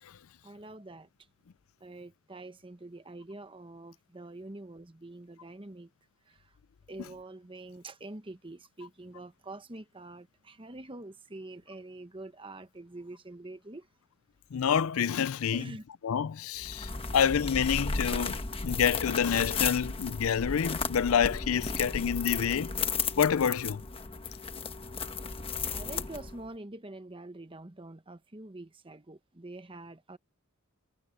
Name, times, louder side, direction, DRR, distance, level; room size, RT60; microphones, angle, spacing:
voice 1, 0.4-1.1 1.8-5.9 6.3-6.4 6.9-13.9 15.5-15.8 16.9-17.1 25.7-30.2, right 2 dB, 25° right, 1.1 m, -45 dB
voice 2, 14.5-15.7 16.0-22.7 23.2-23.8, left 7 dB, 75° left, 0.4 m, -28 dB
sound 1, 16.6-26.5, left 4 dB, 25° left, 1.2 m, -34 dB
head